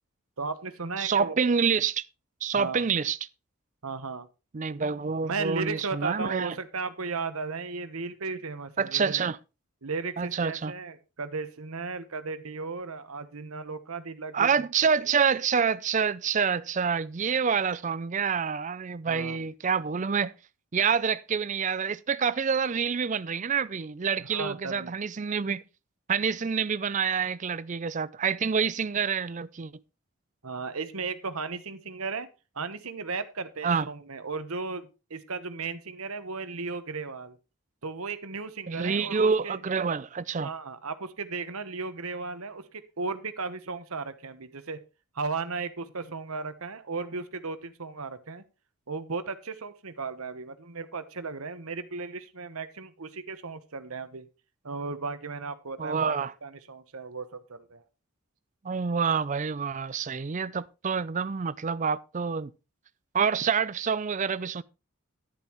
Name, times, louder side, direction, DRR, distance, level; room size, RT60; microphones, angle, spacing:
voice 1, 0.4-1.4 2.5-2.9 3.8-4.3 5.2-9.2 9.8-14.7 15.3-15.4 19.0-19.4 19.8-19.9 24.2-25.0 30.4-32.3 32.5-37.4 37.8-39.6 40.4-44.8 45.1-48.4 48.9-54.3 54.6-57.8, right 4 dB, 80° right, 1.1 m, -35 dB
voice 2, 1.0-2.0 2.4-3.2 4.5-6.5 8.8-9.4 10.2-10.7 14.3-20.3 20.7-25.6 26.1-29.7 33.6-33.9 38.7-40.5 55.8-56.3 58.6-62.5 63.1-64.6, right 6 dB, 35° right, 0.4 m, -27 dB
10.5 x 10.5 x 3.1 m
head